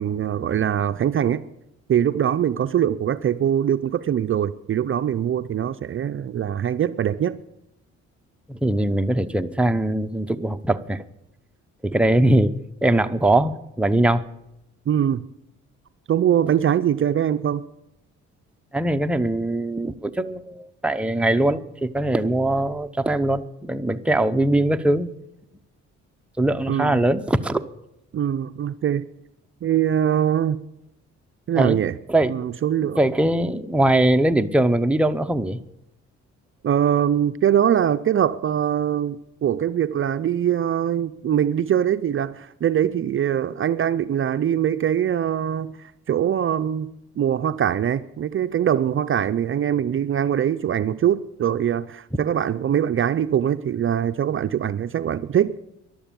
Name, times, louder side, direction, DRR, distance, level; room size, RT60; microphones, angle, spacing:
voice 1, 0.0-1.4 1.9-7.4 14.9-15.2 16.1-17.6 26.7-27.0 28.1-29.0 29.6-30.6 31.5-31.9 32.3-33.0 36.6-55.5, right 9 dB, 45° right, 11 dB, 0.5 m, -22 dB
voice 2, 8.5-11.0 11.8-12.5 12.8-14.2 18.7-25.1 26.4-27.7 31.6-31.8 32.1-32.3 33.0-35.6, right 1 dB, 5° right, 7 dB, 0.7 m, -21 dB
13.0 x 11.5 x 7.0 m, 0.85 s
cardioid pair, 90°, 30 cm